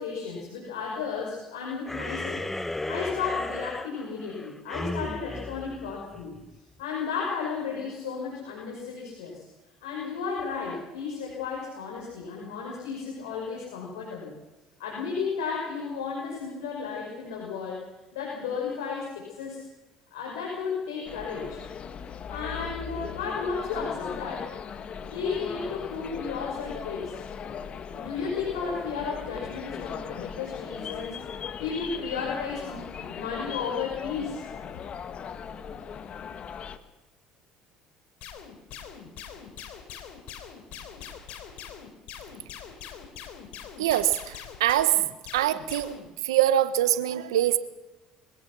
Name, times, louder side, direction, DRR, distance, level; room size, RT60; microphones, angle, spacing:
voice 1, 0.0-2.4 2.9-6.3 6.8-9.4 9.8-14.3 14.8-17.8 18.1-19.6 20.1-21.6 22.3-27.2 27.9-31.2 31.6-34.4, left 5 dB, 85° left, -3 dB, 6.0 m, -33 dB
sound 1, 1.8-6.6, left 1 dB, 10° left, 1.3 m, -35 dB
sound 2, 21.0-36.8, left 7 dB, 45° left, 1.7 m, -38 dB
sound 3, 38.2-46.1, left 8 dB, 65° left, 3.6 m, -42 dB
voice 2, 43.8-45.0 45.3-46.0 46.2-47.6, right 12 dB, 85° right, 14 dB, 1.2 m, -24 dB
24.5 x 17.5 x 6.2 m, 1.1 s
hypercardioid pair, 70°, 3 cm